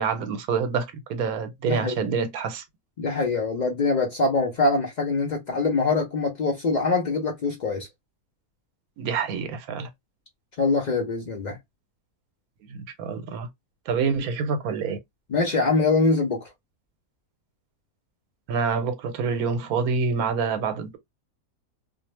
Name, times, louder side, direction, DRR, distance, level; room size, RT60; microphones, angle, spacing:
voice 1, 0.0-2.6 9.0-9.9 12.7-13.5 13.9-15.0 18.5-21.0, right 5 dB, 80° right, 1.1 m, -27 dB
voice 2, 1.6-2.1 3.0-7.9 10.6-11.6 15.3-16.5, left 3 dB, 80° left, 0.4 m, -24 dB
2.5 x 2.0 x 2.9 m
omnidirectional pair, 1.5 m